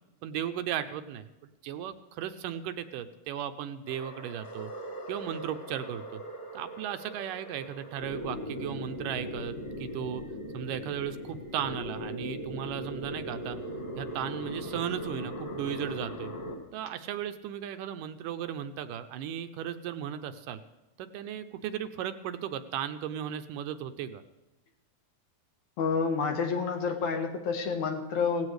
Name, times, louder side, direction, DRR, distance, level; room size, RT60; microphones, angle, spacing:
voice 1, 0.2-1.3 1.6-4.7 5.1-6.2 6.5-10.2 10.5-13.6 14.0-16.3 16.7-20.6 21.0-24.2, right 10 dB, 80° right, 9 dB, 2.2 m, -36 dB
sound 1, 3.8-16.5, equal, 25° left, 1.2 m, -39 dB
voice 2, 25.8-28.5, left 5 dB, 65° left, 4 dB, 2.5 m, -29 dB
17.5 x 16.0 x 3.3 m, 1.0 s
omnidirectional pair, 4.0 m